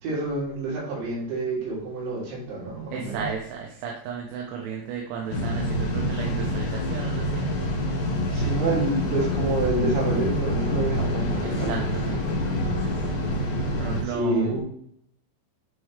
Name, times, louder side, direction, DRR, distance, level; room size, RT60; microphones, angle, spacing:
voice 1, 0.0-3.3 8.3-11.9 14.1-14.6, right 2 dB, 65° right, -6 dB, 5.4 m, -28 dB
voice 2, 2.9-7.5 11.4-12.2 13.1-13.2 13.8-14.6, right 6 dB, 85° right, 0 dB, 3.3 m, -34 dB
sound 1, 5.3-14.0, left 1 dB, 65° left, 2.3 m, -26 dB
10.0 x 4.5 x 3.3 m, 0.68 s
omnidirectional pair, 5.5 m